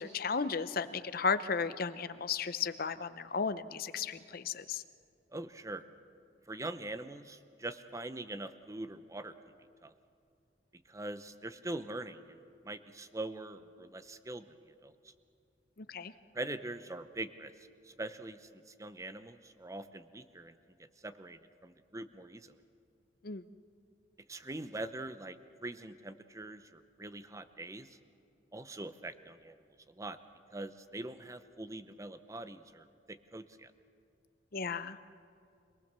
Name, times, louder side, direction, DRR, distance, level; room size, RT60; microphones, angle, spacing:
voice 1, 0.0-4.8 15.8-16.1 23.2-23.4 34.5-35.0, left 5 dB, 50° left, 13 dB, 0.7 m, -34 dB
voice 2, 5.3-5.8 6.5-9.3 9.8-9.9 10.9-12.4 12.6-15.1 16.3-17.5 17.8-22.5 24.3-25.4 25.6-28.0 28.5-29.5 29.9-30.2 30.5-33.7, right 2 dB, 15° right, 12 dB, 0.7 m, -43 dB
25.5 x 18.5 x 6.7 m, 2.5 s
head